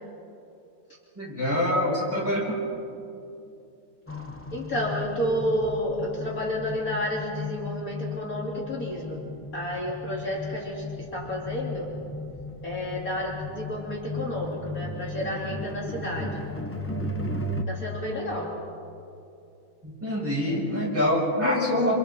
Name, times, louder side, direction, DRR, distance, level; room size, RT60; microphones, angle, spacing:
voice 1, 1.2-2.5 19.8-22.0, left 1 dB, 5° right, -5 dB, 6.4 m, -25 dB
voice 2, 1.7-2.1 2.5-2.6 4.5-9.2 9.5-10.8 11.1-11.9 12.6-16.4 17.7-18.6 21.4-21.9, equal, 45° left, -4 dB, 3.2 m, -31 dB
sound 1, 4.1-17.6, left 2 dB, 15° left, 0.5 m, -36 dB
29.5 x 28.0 x 4.3 m, 2.6 s
omnidirectional pair, 2.1 m